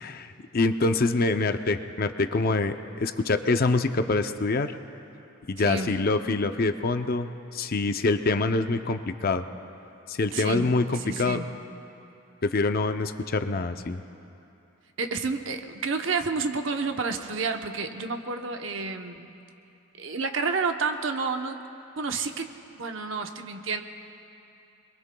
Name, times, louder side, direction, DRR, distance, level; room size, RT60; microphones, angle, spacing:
voice 1, 0.5-4.7 5.5-9.4 10.1-11.4 12.4-14.0, left 3 dB, 45° left, 8 dB, 0.5 m, -25 dB
voice 2, 5.6-5.9 10.3-11.5 15.0-19.3 20.0-21.6 22.0-22.5 22.7-23.8, right 4 dB, 65° right, 5 dB, 0.9 m, -30 dB
26.5 x 22.0 x 2.3 m, 2.8 s
head